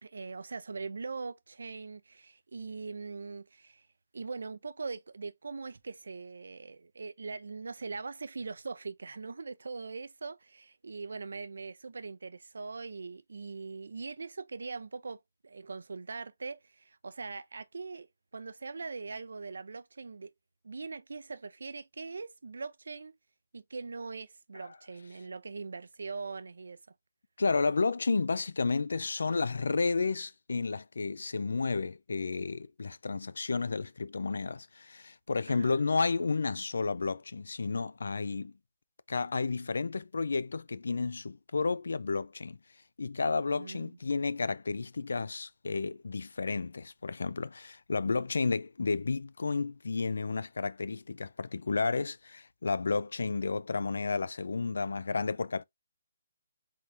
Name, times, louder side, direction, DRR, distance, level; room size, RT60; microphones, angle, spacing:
voice 1, 0.0-3.9 4.1-18.1 18.3-20.3 20.6-23.1 23.5-26.8 35.5-35.8 43.5-43.9, right 4 dB, 85° right, 0.5 m, -41 dB
voice 2, 27.4-38.5 39.1-42.6 43.0-55.6, left 4 dB, 85° left, 0.4 m, -32 dB
4.3 x 3.7 x 2.6 m
hypercardioid pair, 165°, 0 cm